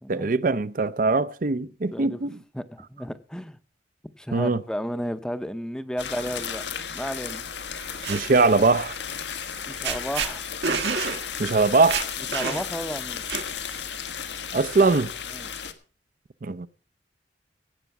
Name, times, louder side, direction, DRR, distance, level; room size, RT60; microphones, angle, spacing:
voice 1, 0.1-2.4 4.3-4.6 8.1-9.0 11.4-12.1 14.5-15.1 16.4-16.7, right 3 dB, 50° right, 0.5 m, -21 dB
voice 2, 2.5-3.6 4.2-7.4 9.7-10.4 12.3-13.3 15.3-15.5, equal, 5° left, 0.7 m, -33 dB
sound 1, 6.0-15.7, left 7 dB, 90° left, 1.4 m, -34 dB
sound 2, 7.7-8.2 9.5-9.6 9.8-10.3 10.6-11.2 11.5-11.6 11.9-12.8 13.3-13.8, right 5 dB, 80° right, 1.6 m, -28 dB
16.5 x 8.2 x 5.9 m
head